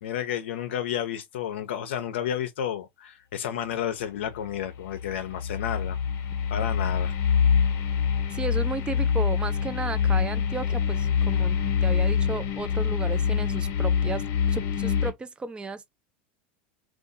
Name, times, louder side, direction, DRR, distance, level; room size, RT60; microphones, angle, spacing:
voice 1, 0.0-6.0 6.5-7.1, left 10 dB, 85° left, 0.4 m, -31 dB
sound 1, 4.4-15.1, left 7 dB, 50° left, 0.8 m, -25 dB
voice 2, 8.3-14.2 14.5-15.9, right 4 dB, 15° right, 0.4 m, -34 dB
2.6 x 2.3 x 2.5 m
hypercardioid pair, 105°, 6 cm